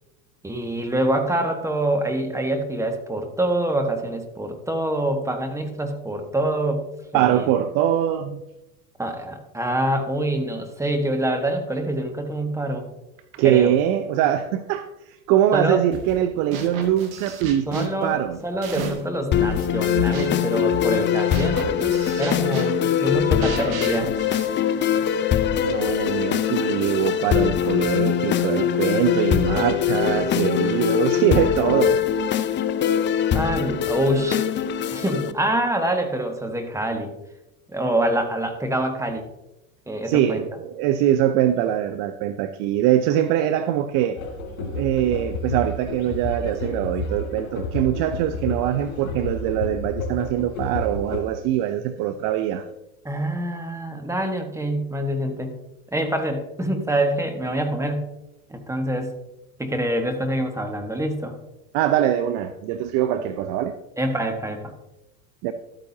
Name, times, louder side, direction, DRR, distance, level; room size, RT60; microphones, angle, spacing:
voice 1, 0.4-6.9 7.1-7.5 9.0-12.9 13.4-13.7 15.5-15.8 17.7-18.2 18.4-24.1 33.3-34.4 34.9-37.1 37.7-39.3 39.9-40.4 53.0-55.5 55.9-58.1 58.5-59.1 59.6-61.3 64.0-64.7, right 1 dB, 5° right, 5 dB, 1.4 m, -25 dB
voice 2, 7.1-8.4 13.3-18.4 25.6-32.0 40.1-44.2 44.6-52.7 61.7-63.8 65.4-65.5, right 11 dB, 50° right, 10 dB, 0.7 m, -23 dB
sound 1, 15.9-16.2 16.5-19.2 19.5-25.2, right 3 dB, 75° right, 2.1 m, -34 dB
sound 2, 19.3-35.3, left 9 dB, 25° left, 0.6 m, -22 dB
sound 3, 44.2-51.2, left 2 dB, 80° left, 3.1 m, -31 dB
12.5 x 8.9 x 2.8 m, 0.92 s
hypercardioid pair, 95°, 41 cm